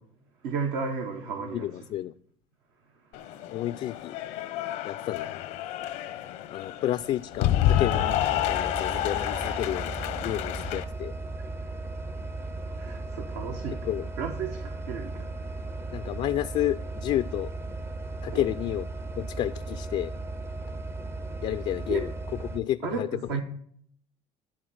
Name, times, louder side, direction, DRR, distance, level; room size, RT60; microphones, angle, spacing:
voice 1, 0.4-1.9 3.0-3.6 6.6-6.8 11.7-11.8 12.2-13.9 14.2-16.2 18.3-18.5 21.9-22.0 22.8-23.4, right 5 dB, 85° right, 1.2 m, -35 dB
voice 2, 1.5-2.1 3.5-4.2 4.8-5.6 6.5-9.9 10.2-11.1 13.8-14.1 15.9-17.5 18.2-18.9 19.2-20.1 21.4-22.1 22.5-23.1, left 13 dB, 55° left, 0.4 m, -30 dB
Cheering / Applause, 3.1-10.8, left 12 dB, 80° left, 0.8 m, -29 dB
sound 1, 7.9-22.6, right 2 dB, 20° right, 0.5 m, -36 dB
11.0 x 3.9 x 7.7 m
supercardioid pair, 95°, 13 cm